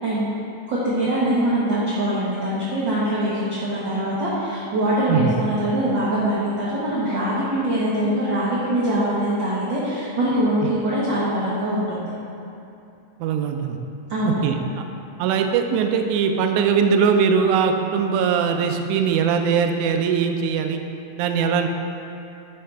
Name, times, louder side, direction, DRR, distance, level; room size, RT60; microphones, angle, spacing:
voice 1, 0.0-0.3 0.7-12.1 14.1-14.4, right 1 dB, 55° right, -8 dB, 1.3 m, -23 dB
voice 2, 13.2-13.8 14.3-14.8 15.2-20.8 21.2-21.7, right 6 dB, 85° right, 5 dB, 2.0 m, -21 dB
11.0 x 5.6 x 3.4 m, 2.7 s
omnidirectional pair, 3.5 m